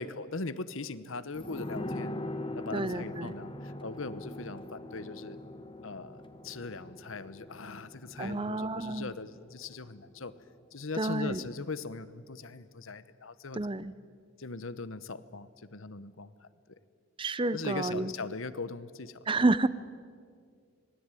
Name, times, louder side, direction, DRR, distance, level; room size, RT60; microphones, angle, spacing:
voice 1, 0.0-2.1 2.5-5.4 5.8-10.3 10.7-13.7 14.4-16.5 17.5-19.4, left 3 dB, 75° left, 14 dB, 1.1 m, -40 dB
sound 1, 1.3-10.6 10.9-11.0, left 1 dB, 25° left, 1.6 m, -42 dB
voice 2, 2.7-3.3 8.2-9.1 11.0-11.4 13.6-13.9 17.2-18.1 19.3-19.7, right 2 dB, 25° right, 16 dB, 0.6 m, -29 dB
26.0 x 20.0 x 9.1 m, 2.2 s
head